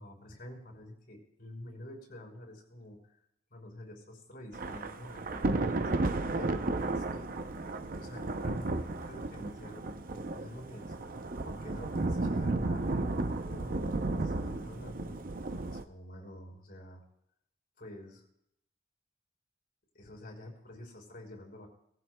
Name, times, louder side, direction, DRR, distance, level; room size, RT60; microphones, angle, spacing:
voice 1, 0.0-3.1 3.5-7.3 8.0-9.8 10.1-10.9 11.4-15.2 15.7-17.0 17.8-18.2 19.9-21.7, left 1 dB, 55° left, 1 dB, 5.4 m, -48 dB
Thunder / Rain, 4.5-15.8, right 2 dB, 50° right, 0.7 m, -33 dB
20.0 x 15.5 x 2.3 m, 0.75 s
head